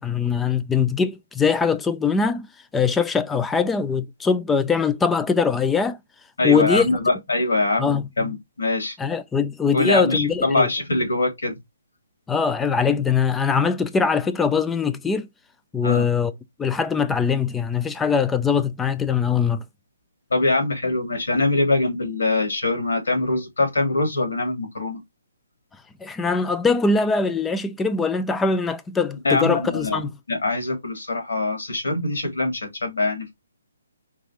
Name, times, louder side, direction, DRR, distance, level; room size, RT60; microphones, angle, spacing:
voice 1, 0.0-2.5 2.7-6.0 6.4-6.9 7.8-8.1 9.0-10.7 12.3-15.3 15.7-16.3 16.6-19.6 26.0-30.1, left 5 dB, 10° left, 0.4 m, -22 dB
voice 2, 6.4-9.0 9.7-11.6 15.8-16.0 20.3-25.0 29.2-30.0 30.3-33.3, left 2 dB, 85° left, 2.9 m, -23 dB
4.9 x 3.7 x 3.0 m
hypercardioid pair, 155°, 0 cm